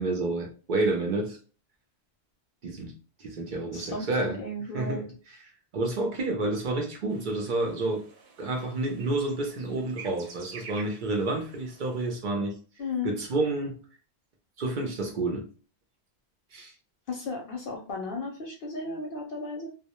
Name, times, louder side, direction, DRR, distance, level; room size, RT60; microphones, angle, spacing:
voice 1, 0.0-1.4 2.6-2.9 3.2-4.4 4.7-5.0 5.7-8.0 8.4-12.6 13.0-13.8 14.6-15.5 16.5-16.7, right 2 dB, 60° right, 0.6 m, -29 dB
voice 2, 3.7-5.0 12.8-13.1 17.1-19.7, left 3 dB, 65° left, 0.7 m, -34 dB
sound 1, 7.1-12.2, right 5 dB, 85° right, 0.9 m, -49 dB
2.1 x 2.0 x 2.8 m
omnidirectional pair, 1.1 m